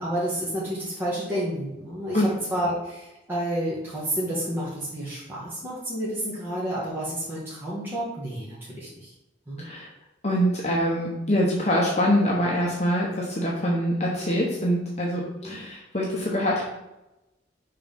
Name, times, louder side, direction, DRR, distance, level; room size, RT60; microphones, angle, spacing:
voice 1, 0.0-9.1 9.5-9.7 15.4-15.6, right 1 dB, 10° right, -9 dB, 1.5 m, -30 dB
voice 2, 9.6-9.9 10.2-16.6, equal, 40° left, -3 dB, 1.0 m, -24 dB
5.4 x 3.8 x 5.5 m, 0.95 s
head